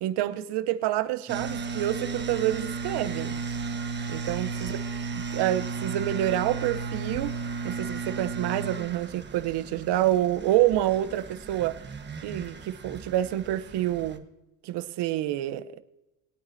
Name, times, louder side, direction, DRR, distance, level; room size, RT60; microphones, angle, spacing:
voice 1, 0.0-3.4 4.1-4.8 5.1-7.4 7.6-11.8 12.2-14.2 14.6-15.8, right 13 dB, 65° right, 1.0 m, -27 dB
sound 1, 1.3-14.2, right 4 dB, 25° right, 1.5 m, -35 dB
21.5 x 9.0 x 2.8 m
supercardioid pair, 95°, 45 cm